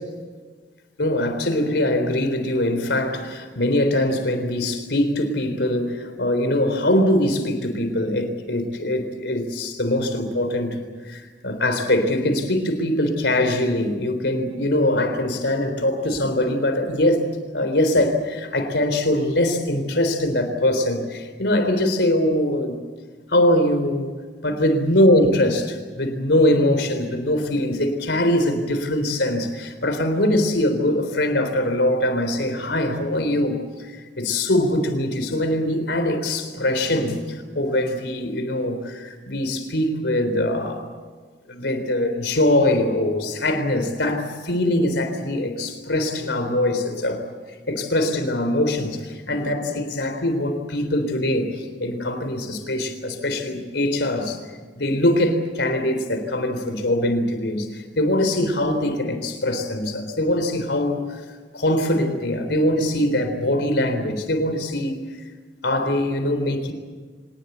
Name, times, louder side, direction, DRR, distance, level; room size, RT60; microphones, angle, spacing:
voice 1, 1.0-22.8 23.3-24.1 24.4-40.9 41.5-54.4 54.8-61.3 61.5-65.0 65.6-66.7, left 1 dB, 75° left, 7 dB, 3.7 m, -22 dB
25.0 x 19.5 x 8.1 m, 1.5 s
head